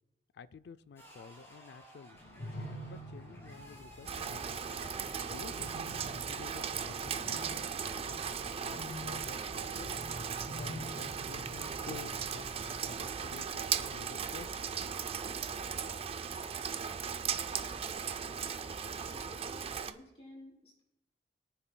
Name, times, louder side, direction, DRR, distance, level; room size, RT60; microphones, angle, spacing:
voice 1, 0.3-2.2 2.9-4.6 5.2-5.8 6.1-9.9 10.6-12.6 12.9-14.5, left 5 dB, 65° left, 16 dB, 0.4 m, -51 dB
sound 1, 1.0-9.5, right 1 dB, 15° left, 2.5 m, -57 dB
sound 2, 2.1-13.0, left 1 dB, 85° left, 1.9 m, -47 dB
Rain, 4.1-19.9, right 7 dB, 35° right, 0.4 m, -37 dB
voice 2, 19.0-20.8, left 1 dB, 35° left, -3 dB, 3.3 m, -54 dB
22.0 x 8.9 x 2.2 m, 0.95 s
head